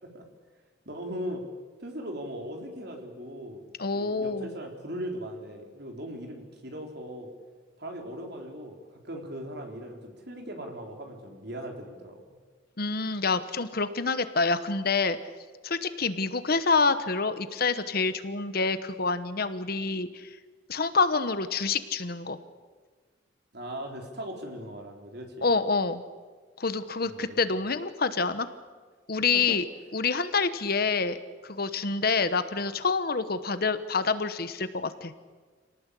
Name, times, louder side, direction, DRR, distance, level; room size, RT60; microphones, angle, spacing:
voice 1, 0.9-1.4 1.8-3.6 3.9-7.3 7.8-12.2 23.5-25.5 27.1-27.4 29.3-29.6, equal, 55° right, 3 dB, 4.0 m, -39 dB
voice 2, 3.8-4.5 12.8-15.2 15.6-20.3 20.7-22.4 25.4-26.0 26.6-28.5 29.1-29.6 29.9-35.1, left 4 dB, 50° left, 12 dB, 1.1 m, -27 dB
27.0 x 18.5 x 8.4 m, 1.5 s
head